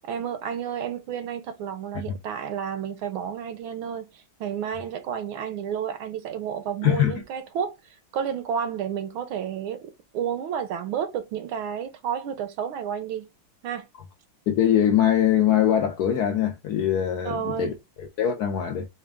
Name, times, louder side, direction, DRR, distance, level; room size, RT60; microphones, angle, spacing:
voice 1, 0.1-7.8 8.1-13.3 13.6-13.8 17.2-17.7, right 8 dB, 90° right, 1.6 m, -31 dB
voice 2, 6.8-7.1 14.5-18.9, left 10 dB, 70° left, 1.0 m, -22 dB
4.3 x 2.2 x 3.3 m
omnidirectional pair, 2.2 m